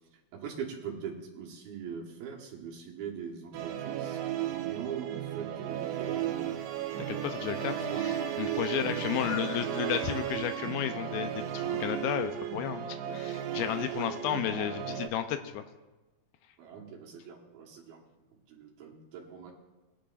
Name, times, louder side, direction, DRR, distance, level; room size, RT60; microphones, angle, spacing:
voice 1, 0.3-4.2 4.5-6.6 7.8-8.2 8.7-9.6 13.7-14.8 16.6-18.0 18.5-19.5, right 6 dB, 70° right, -2 dB, 3.1 m, -42 dB
Musical instrument, 3.5-15.1, right 10 dB, 85° right, 2.9 m, -34 dB
voice 2, 7.1-15.6, left 10 dB, 80° left, 8 dB, 2.3 m, -33 dB
20.5 x 10.5 x 2.5 m, 1.1 s
omnidirectional pair, 4.7 m